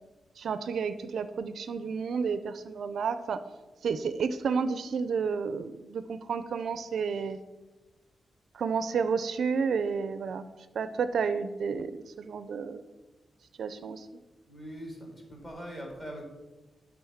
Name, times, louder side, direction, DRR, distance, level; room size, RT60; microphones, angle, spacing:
voice 1, 0.4-3.4 3.8-7.4 8.5-10.5 10.7-11.9 12.2-12.8 13.6-14.1, right 5 dB, 65° right, 12 dB, 0.4 m, -31 dB
voice 2, 14.5-16.3, equal, 15° left, -1 dB, 2.2 m, -42 dB
10.5 x 3.8 x 7.1 m, 1.2 s
wide cardioid pair, 165°, 0 cm